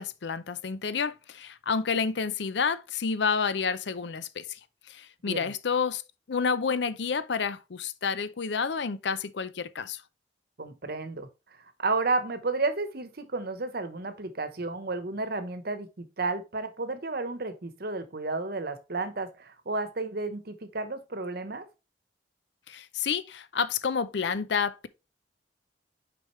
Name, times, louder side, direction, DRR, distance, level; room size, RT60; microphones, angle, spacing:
voice 1, 0.0-4.6 4.9-6.0 6.3-10.0 22.7-24.9, left 5 dB, 70° left, 0.6 m, -29 dB
voice 2, 10.6-11.3 11.8-21.6, right 3 dB, 60° right, 1.0 m, -32 dB
6.4 x 5.1 x 3.1 m
head